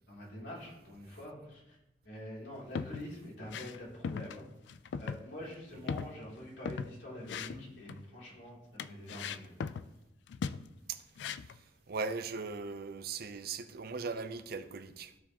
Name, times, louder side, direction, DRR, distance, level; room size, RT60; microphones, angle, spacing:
voice 1, 0.1-1.8 2.0-4.5 5.0-9.5, left 1 dB, 90° left, 2.9 m, -46 dB
sound 1, 2.5-3.1 3.4-3.8 4.0-4.4 4.7-5.2 5.5-5.6 5.9-6.9 7.2-8.0 8.8-9.9 10.3-10.7 11.2-11.6, left 6 dB, 70° left, 0.3 m, -39 dB
voice 2, 11.9-15.2, right 4 dB, 60° right, 0.5 m, -39 dB
14.0 x 4.7 x 2.9 m
head